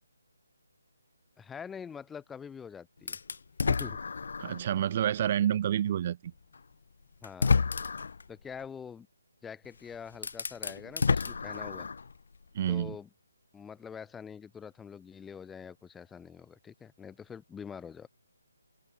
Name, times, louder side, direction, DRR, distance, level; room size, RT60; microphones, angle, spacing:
voice 1, 1.4-3.2 3.7-4.0 7.2-7.6 8.3-9.1 9.4-11.9 12.7-13.1 13.5-18.1, left 7 dB, 5° left, 1.0 m, -45 dB
sound 1, 3.1-4.7 5.2-5.3 6.6-6.7 7.2-8.2 9.6-9.7 10.1-12.1, left 5 dB, 60° left, 1.9 m, -30 dB
voice 2, 4.4-6.3 12.5-13.0, right 10 dB, 35° right, 0.6 m, -28 dB
hypercardioid pair, 165°, 0 cm